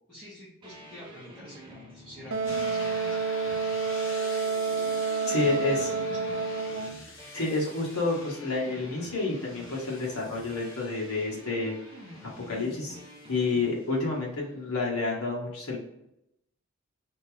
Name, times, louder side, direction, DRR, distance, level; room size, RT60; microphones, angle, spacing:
voice 1, 0.1-3.9 5.4-6.5, equal, 5° left, -14 dB, 1.8 m, -47 dB
sound 1, 0.6-13.7, equal, 20° right, 0.9 m, -48 dB
Wind instrument woodwind instrument, 2.3-7.0, right 4 dB, 65° right, 0.5 m, -29 dB
sound 2, 2.4-14.1, left 2 dB, 60° left, 1.0 m, -47 dB
voice 2, 5.3-5.9 7.3-11.7 12.2-13.0 13.3-15.8, left 3 dB, 80° left, -2 dB, 1.8 m, -29 dB
4.3 x 3.6 x 3.4 m, 0.82 s
head